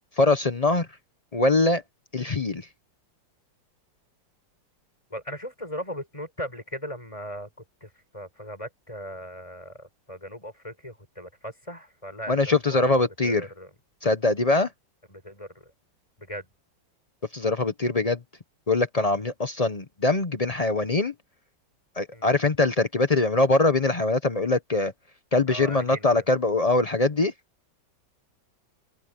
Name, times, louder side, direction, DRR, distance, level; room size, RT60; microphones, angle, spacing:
voice 1, 0.2-0.9 1.3-1.8 2.1-2.7 12.3-13.5 14.0-14.7 17.3-18.2 18.7-21.1 22.0-24.9 25.3-27.3, left 2 dB, 40° left, 0.5 m, -23 dB
voice 2, 5.1-7.5 7.8-13.7 15.1-15.7 16.2-16.5 22.1-22.3 25.5-26.2, equal, 15° left, 7.3 m, -38 dB
open air
omnidirectional pair, 2.0 m